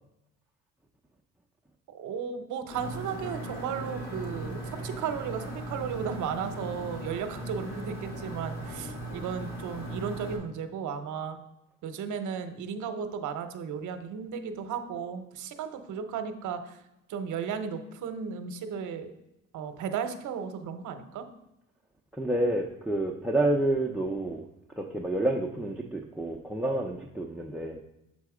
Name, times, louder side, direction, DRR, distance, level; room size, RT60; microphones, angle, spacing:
voice 1, 1.9-11.4 11.8-16.8 17.1-19.1 19.5-21.3, right 7 dB, 75° right, 8 dB, 0.8 m, -35 dB
sound 1, 2.7-10.4, right 1 dB, 65° left, 2.5 m, -38 dB
voice 2, 22.1-24.4 24.8-27.8, right 1 dB, ahead, 2 dB, 0.5 m, -29 dB
7.5 x 4.1 x 4.8 m, 0.89 s
cardioid pair, 90°, 30 cm